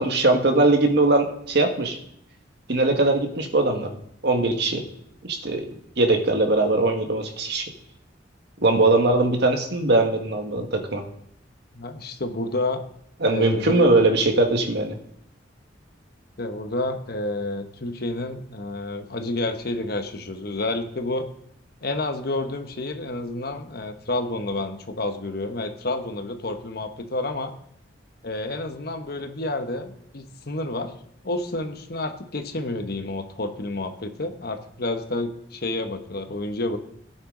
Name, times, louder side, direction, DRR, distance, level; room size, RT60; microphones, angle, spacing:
voice 1, 0.0-2.0 2.7-3.9 4.2-4.8 5.2-5.6 6.0-7.7 8.6-11.0 13.2-15.0, right 2 dB, 65° right, 4 dB, 1.7 m, -20 dB
voice 2, 11.7-12.8 13.3-13.9 16.4-21.3 21.8-27.5 28.2-30.9 31.2-36.8, left 2 dB, 55° left, 7 dB, 1.2 m, -29 dB
17.0 x 9.1 x 3.9 m, 0.74 s
head